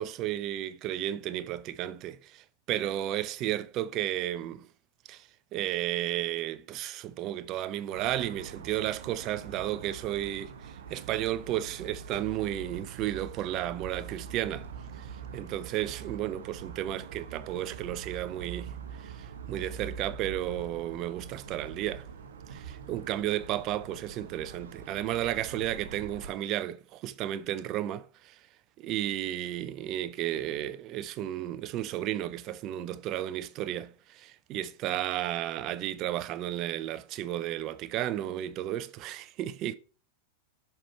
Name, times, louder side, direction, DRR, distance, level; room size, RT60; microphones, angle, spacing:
voice 1, 0.0-4.7 5.1-14.7 15.0-15.1 15.3-18.7 19.0-22.1 22.5-28.4 28.8-39.7, right 12 dB, 35° right, 0.6 m, -33 dB
sound 1, 7.9-26.3, right 6 dB, 65° right, 0.9 m, -44 dB
7.5 x 4.8 x 4.4 m
figure-of-eight pair, 90°, 0 cm